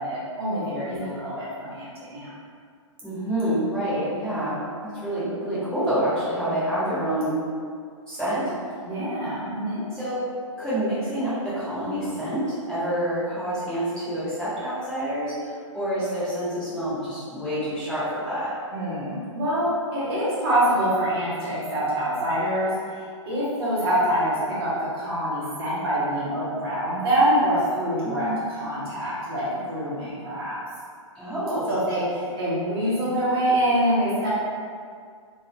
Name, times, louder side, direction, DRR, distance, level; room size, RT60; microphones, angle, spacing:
voice 1, 0.0-1.8 2.1-2.3 8.8-9.8 18.7-30.6 31.7-34.3, right 1 dB, 45° right, -9 dB, 1.2 m, -25 dB
voice 2, 3.0-7.4 8.1-8.5 9.9-10.2 10.6-18.5 28.0-28.4 31.1-31.7, right 1 dB, 5° left, -14 dB, 1.4 m, -27 dB
3.1 x 2.7 x 2.8 m, 2.1 s
figure-of-eight pair, 120°, 17 cm